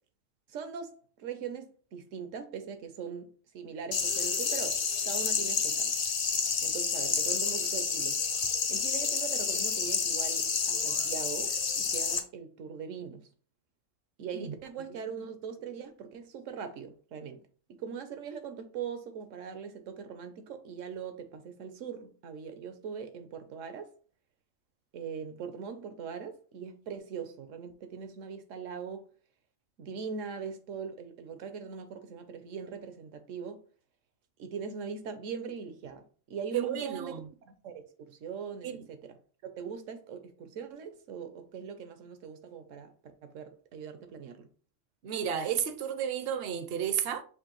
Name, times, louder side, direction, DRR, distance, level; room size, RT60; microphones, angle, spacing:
voice 1, 0.5-3.3 3.5-5.9 6.6-8.2 8.7-13.3 14.2-17.4 17.7-23.9 24.9-29.0 29.8-33.6 34.4-36.0 36.3-37.1 37.4-39.2 39.4-42.9 43.2-44.5, right 6 dB, 85° right, 1.1 m, -41 dB
sound 1, 3.9-12.2, left 5 dB, 50° left, 0.4 m, -29 dB
voice 2, 36.5-37.3 38.6-38.8 45.0-47.2, right 8 dB, 65° right, 0.7 m, -32 dB
6.1 x 2.6 x 3.0 m
omnidirectional pair, 1.3 m